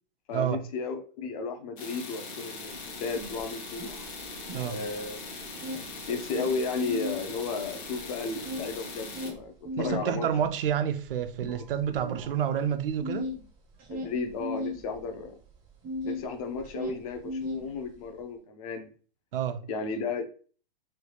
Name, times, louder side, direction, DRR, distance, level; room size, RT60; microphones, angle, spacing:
voice 1, 0.3-3.9 4.6-5.2 6.1-10.3 11.9-12.2 13.9-15.4 16.0-18.9 19.7-20.2, left 4 dB, 40° left, 0.5 m, -34 dB
sound 1, 1.8-9.3, left 3 dB, 65° left, 1.0 m, -41 dB
sound 2, 3.2-5.1 5.4-7.2 7.6-16.3 16.5-18.1, left 2 dB, 20° right, 0.5 m, -37 dB
voice 2, 9.8-13.3 19.3-19.6, right 9 dB, 70° right, 0.5 m, -29 dB
3.2 x 2.3 x 3.1 m
hypercardioid pair, 160°, 29 cm